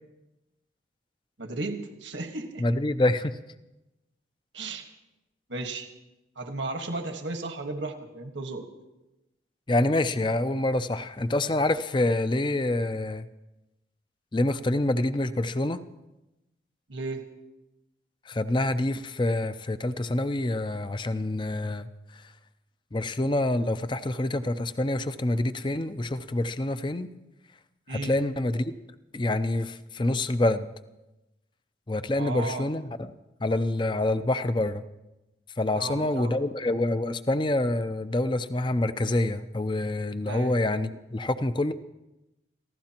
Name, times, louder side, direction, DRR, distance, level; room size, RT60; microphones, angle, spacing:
voice 1, 1.4-2.6 4.5-4.9 5.5-5.9 6.3-8.6 16.9-17.2 27.9-28.1 32.1-32.7 35.7-36.3 40.3-40.5, right 2 dB, 80° right, 4 dB, 1.6 m, -34 dB
voice 2, 2.6-3.4 9.7-13.3 14.3-15.8 18.3-21.9 22.1-22.2 22.9-27.1 27.9-28.7 29.1-30.7 31.9-33.1 33.4-34.8 35.6-41.7, left 1 dB, 25° left, 11 dB, 0.5 m, -26 dB
29.0 x 15.5 x 3.0 m, 0.99 s
head